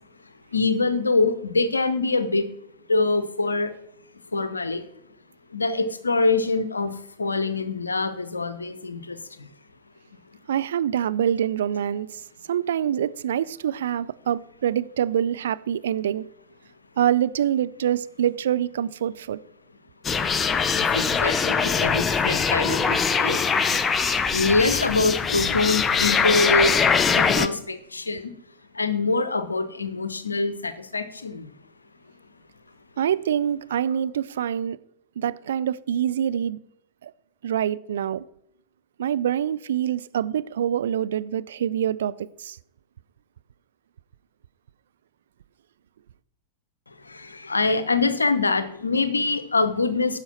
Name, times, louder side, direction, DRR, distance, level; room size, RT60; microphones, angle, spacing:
voice 1, 0.5-2.5 2.9-3.7 4.3-4.8 5.5-9.2 20.8-23.4 23.7-23.8 24.3-26.8 27.2-28.3 28.8-31.5 47.1-50.2, left 3 dB, 80° left, 0.7 m, -24 dB
voice 2, 10.5-12.2 12.5-16.3 17.0-19.4 33.0-34.8 35.2-36.6 37.0-37.1 37.4-38.2 39.0-42.6, right 10 dB, 60° right, 0.3 m, -25 dB
sound 1, 20.0-27.5, left 6 dB, 20° left, 0.5 m, -22 dB
10.0 x 6.3 x 4.2 m
figure-of-eight pair, 90°, 0 cm